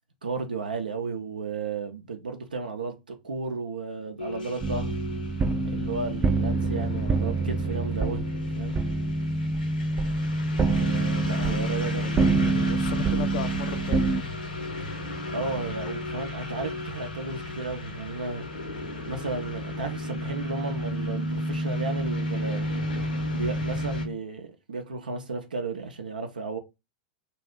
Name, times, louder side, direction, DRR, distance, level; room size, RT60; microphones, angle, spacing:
voice 1, 0.2-5.0 5.6-8.3 8.5-8.8 10.6-12.1 15.3-18.5 19.1-22.8 23.3-26.6, right 3 dB, 85° right, 0.4 m, -33 dB
sound 1, 4.2-24.1, left 1 dB, 85° left, 0.8 m, -32 dB
sound 2, 4.6-14.2, right 4 dB, 20° right, 0.4 m, -27 dB
voice 2, 11.9-14.3, left 10 dB, 55° left, 0.3 m, -36 dB
2.5 x 2.3 x 3.4 m
figure-of-eight pair, 90°, 5 cm